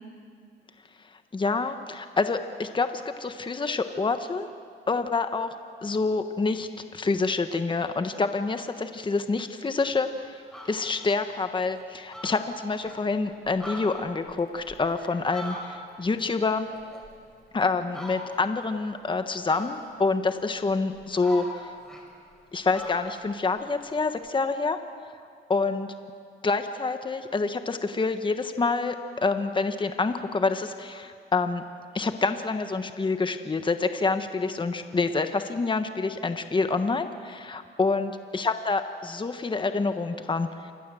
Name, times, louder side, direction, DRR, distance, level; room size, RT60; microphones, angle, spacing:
voice 1, 1.3-4.5 4.9-5.5 5.8-10.1 10.7-16.7 17.5-21.7 22.5-24.8 25.5-25.9 26.4-31.6 31.9-40.7, left 3 dB, 25° left, 8 dB, 1.3 m, -27 dB
Fowl, 9.9-10.0 10.4-11.0 11.4-11.5 11.8-11.9 12.1-13.0 13.4-16.1 16.4-17.5 17.9-18.6 19.5-20.1 20.7-22.4 22.7-24.3, left 1 dB, 5° left, 5.6 m, -42 dB
27.5 x 21.0 x 7.7 m, 2.3 s
cardioid pair, 90°, 20 cm